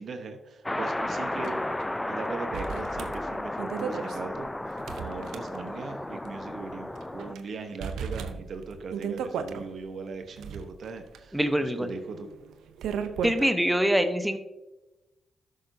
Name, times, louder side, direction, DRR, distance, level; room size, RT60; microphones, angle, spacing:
voice 1, 0.0-1.8 2.0-12.3, right 4 dB, 65° right, 7 dB, 1.0 m, -39 dB
sound 1, 0.7-7.4, left 1 dB, 15° left, 0.3 m, -33 dB
sound 2, 1.4-1.5 1.8-1.9 2.5-5.9 6.3-6.4 7.0-7.4 7.8-9.6 10.2-13.5, right 7 dB, 80° right, 0.6 m, -36 dB
voice 2, 11.3-11.9 13.2-14.4, equal, 5° right, 8 dB, 0.9 m, -24 dB
12.5 x 6.6 x 2.7 m, 1.0 s
supercardioid pair, 50°, 0 cm